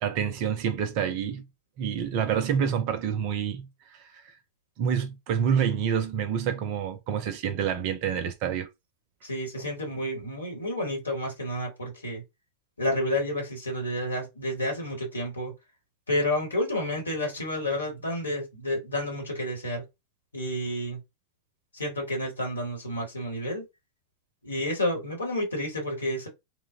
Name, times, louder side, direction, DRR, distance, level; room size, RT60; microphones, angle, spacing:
voice 1, 0.0-1.4 1.8-3.7 4.8-8.7 9.6-9.7, right 8 dB, 45° right, 0.5 m, -27 dB
voice 2, 9.2-12.2 12.8-15.5 16.1-19.8 20.3-21.0 21.7-23.6 24.4-26.3, left 1 dB, 75° left, 1.1 m, -30 dB
3.1 x 2.0 x 2.5 m
figure-of-eight pair, 90°, 0 cm